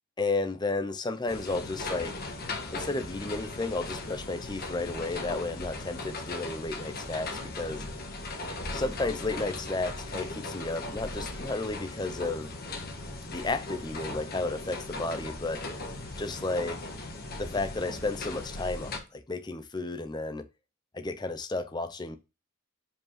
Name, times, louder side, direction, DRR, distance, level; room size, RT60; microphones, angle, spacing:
voice 1, 0.2-2.1 2.7-7.8 8.7-12.5 13.3-15.6 16.2-16.9 17.4-20.5 20.9-22.2, left 3 dB, 20° left, 0.6 m, -33 dB
sound 1, 1.3-19.0, left 2 dB, 45° left, 1.4 m, -38 dB
5.2 x 4.8 x 5.8 m
head